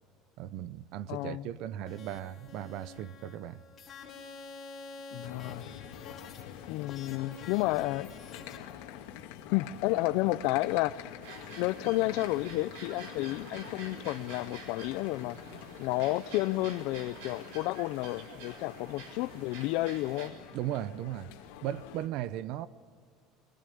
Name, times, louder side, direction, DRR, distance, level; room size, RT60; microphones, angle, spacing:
voice 1, 0.4-3.6 20.5-21.3 21.6-22.7, right 12 dB, 50° right, 0.7 m, -37 dB
voice 2, 1.1-1.5 5.1-5.6 6.7-8.2 9.5-11.0 11.6-15.4 15.8-20.4, left 18 dB, 60° left, 0.5 m, -31 dB
sound 1, 1.8-8.6, left 3 dB, 20° left, 3.6 m, -49 dB
sound 2, 5.2-22.1, left 11 dB, 80° left, 1.9 m, -47 dB
sound 3, 11.2-20.3, right 4 dB, 80° right, 4.0 m, -48 dB
23.0 x 20.0 x 9.3 m
cardioid pair, 175°, 0 cm